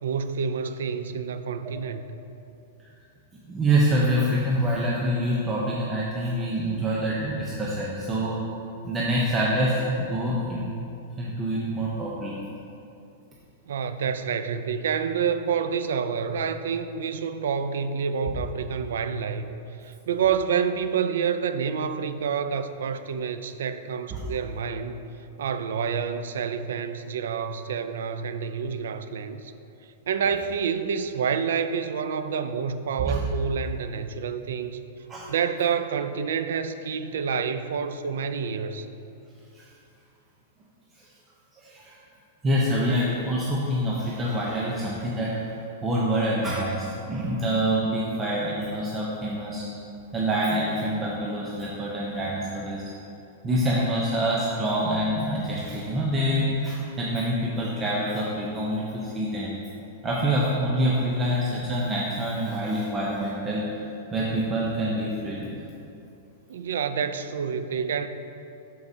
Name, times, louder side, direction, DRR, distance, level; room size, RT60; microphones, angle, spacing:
voice 1, 0.0-2.0 13.7-19.5 19.8-25.0 25.4-29.5 30.1-34.8 35.3-38.9 66.5-68.1, right 6 dB, 85° right, 11 dB, 0.4 m, -28 dB
voice 2, 3.5-8.4 8.8-10.6 11.2-12.4 24.1-24.2 33.0-33.2 35.1-35.3 39.5-39.6 41.6-42.0 42.4-49.6 50.1-52.8 53.4-59.5 60.0-63.6 64.1-65.6, right 1 dB, 15° right, -5 dB, 0.7 m, -26 dB
12.0 x 4.7 x 2.7 m, 2.7 s
supercardioid pair, 155°, 0 cm